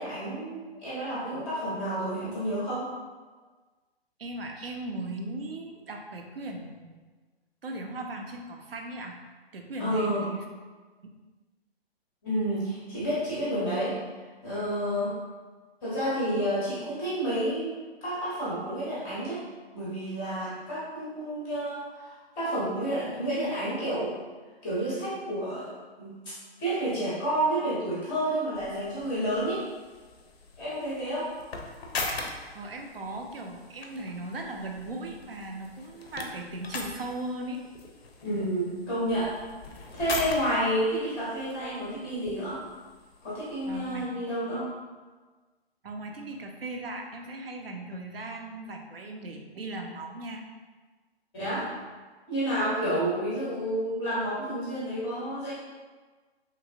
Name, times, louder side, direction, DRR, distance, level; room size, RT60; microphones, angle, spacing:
voice 1, 0.0-2.9 4.6-4.7 9.8-10.3 12.2-14.0 14.4-15.1 15.8-19.4 19.7-24.2 24.6-26.2 26.6-29.7 30.6-31.3 38.2-39.3 39.9-42.6 43.2-44.7 51.3-51.7 52.3-55.5, right 1 dB, 10° left, -9 dB, 0.5 m, -30 dB
voice 2, 4.2-6.9 7.6-9.2 9.5-10.5 32.5-37.6 38.7-38.9 43.7-44.2 45.8-50.4, right 2 dB, 65° right, 2 dB, 0.5 m, -38 dB
sound 1, 28.5-44.1, left 3 dB, 70° left, 0.5 m, -41 dB
2.9 x 2.5 x 2.5 m, 1.4 s
figure-of-eight pair, 130°, 32 cm